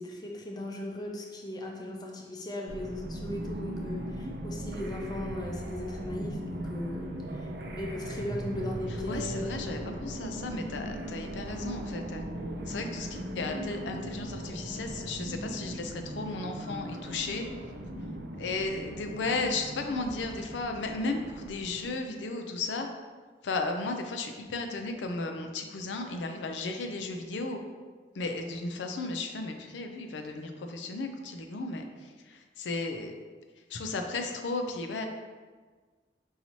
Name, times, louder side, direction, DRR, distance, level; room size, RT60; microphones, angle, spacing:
voice 1, 0.0-10.1, left 1 dB, 25° left, 0 dB, 0.5 m, -38 dB
sound 1, 2.7-21.9, right 1 dB, 65° right, 0.4 m, -38 dB
voice 2, 9.1-12.2 12.7-17.5 18.4-22.9 23.4-27.6 28.1-33.1 33.7-35.1, left 3 dB, 85° left, 5 dB, 0.4 m, -34 dB
5.5 x 2.7 x 3.0 m, 1.4 s
head